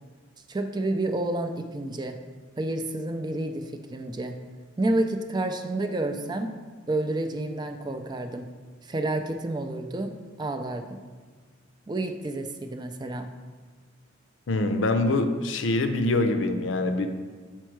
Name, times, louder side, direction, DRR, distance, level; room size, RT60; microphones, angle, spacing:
voice 1, 0.5-2.2 2.6-4.3 4.8-6.5 6.9-8.4 8.8-10.1 10.4-11.0 11.9-13.3, right 2 dB, 20° right, 6 dB, 0.4 m, -29 dB
voice 2, 14.5-17.1, left 2 dB, 70° left, 7 dB, 0.6 m, -24 dB
7.4 x 4.4 x 4.6 m, 1.5 s
head